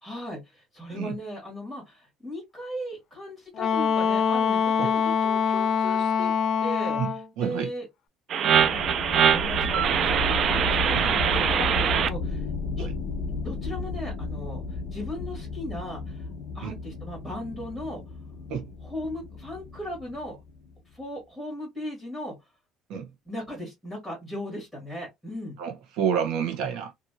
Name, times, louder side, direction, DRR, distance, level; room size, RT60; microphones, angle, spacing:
voice 1, 0.0-6.3 6.6-7.0 7.4-7.9 8.3-12.4 12.8-12.9 13.3-16.3 16.5-18.0 18.8-20.4 20.9-22.4 23.2-25.6, left 1 dB, 5° right, 1.5 m, -37 dB
Wind instrument woodwind instrument, 3.6-7.3, left 6 dB, 40° left, 0.4 m, -24 dB
voice 2, 7.0-7.7 10.9-11.1 12.8-12.9 16.6-16.8 18.5-18.6 22.9-23.1 25.6-26.9, right 8 dB, 65° right, 0.9 m, -29 dB
sound 1, 8.3-12.1, right 8 dB, 40° right, 0.3 m, -23 dB
sound 2, 8.5-20.8, left 3 dB, 80° left, 0.9 m, -33 dB
2.8 x 2.6 x 2.8 m
cardioid pair, 175°, 0 cm